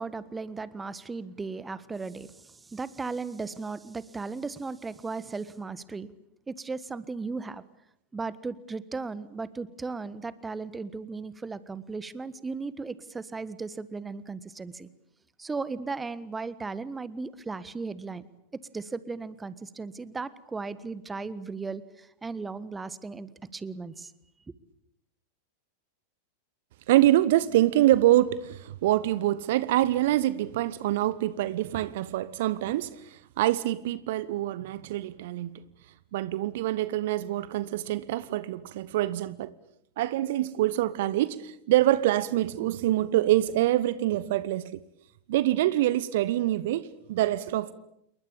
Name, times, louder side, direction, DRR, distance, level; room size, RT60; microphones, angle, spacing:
voice 1, 0.0-6.1 6.5-7.6 8.1-14.9 15.4-18.2 18.7-24.1, right 4 dB, 10° right, 1.4 m, -36 dB
voice 2, 26.9-35.6 36.1-39.5 40.0-44.8 45.3-47.7, right 14 dB, 55° right, 1.0 m, -25 dB
28.0 x 22.5 x 8.7 m
figure-of-eight pair, 90°, 0 cm